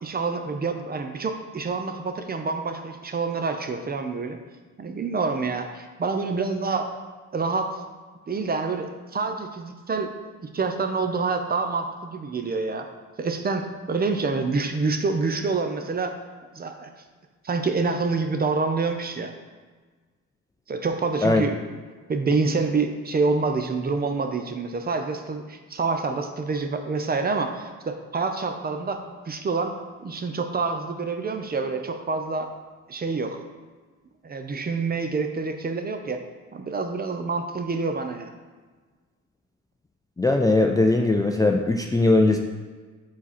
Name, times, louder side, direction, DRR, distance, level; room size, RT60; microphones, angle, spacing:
voice 1, 0.0-4.4 4.8-6.9 7.3-7.8 8.3-10.1 10.4-12.9 13.2-16.2 16.5-16.9 17.4-19.3 20.7-21.8 22.1-32.5 32.9-33.4 34.2-36.2 36.5-38.4, right 4 dB, 30° right, 6 dB, 0.7 m, -27 dB
voice 2, 40.2-42.4, left 2 dB, 10° left, 2 dB, 0.4 m, -20 dB
7.3 x 4.2 x 4.2 m, 1.4 s
cardioid pair, 100°, 31 cm